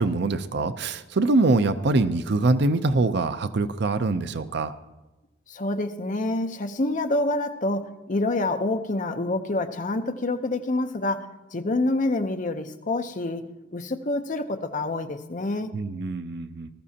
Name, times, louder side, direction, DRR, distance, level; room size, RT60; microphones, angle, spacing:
voice 1, 0.0-4.7 15.7-16.7, right 3 dB, 60° right, 11 dB, 0.6 m, -24 dB
voice 2, 5.5-13.4 13.7-15.7, left 2 dB, 45° left, 6 dB, 0.8 m, -27 dB
19.5 x 13.5 x 2.8 m, 1.1 s
head